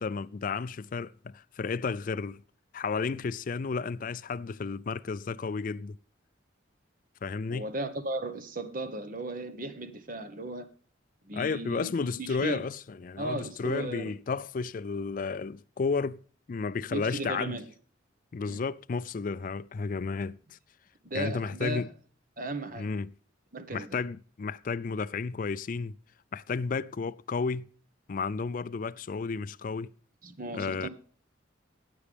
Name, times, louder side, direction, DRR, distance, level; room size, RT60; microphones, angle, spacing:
voice 1, 0.0-2.4 2.7-6.0 7.2-7.7 11.3-16.2 16.5-17.6 18.3-20.6 21.1-21.9 22.7-23.1 23.7-26.0 26.3-27.7 28.1-29.9 30.5-30.9, left 4 dB, 45° left, 0.4 m, -32 dB
voice 2, 7.5-10.7 11.2-12.6 13.2-14.1 16.9-17.6 18.4-18.6 21.0-21.8 22.4-22.9 23.5-23.9 30.2-30.9, right 2 dB, 45° right, 1.1 m, -36 dB
14.5 x 8.4 x 3.4 m
head